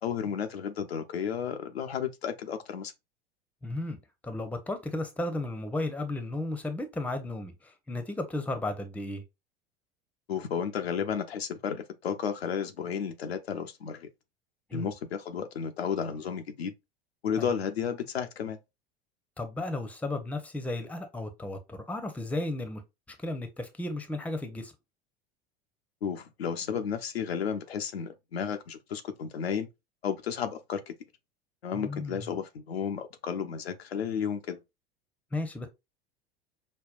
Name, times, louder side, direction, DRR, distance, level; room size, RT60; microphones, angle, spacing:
voice 1, 0.0-2.9 10.3-14.1 14.7-16.7 17.2-18.6 26.0-29.7 30.0-30.9 31.6-34.6, left 7 dB, 85° left, 0.6 m, -33 dB
voice 2, 3.6-4.0 4.2-9.2 14.7-14.9 17.4-17.5 19.4-22.8 23.2-24.7 31.7-32.3 35.3-35.7, left 2 dB, 5° left, 0.7 m, -34 dB
5.2 x 2.2 x 2.3 m
figure-of-eight pair, 75°, 30 cm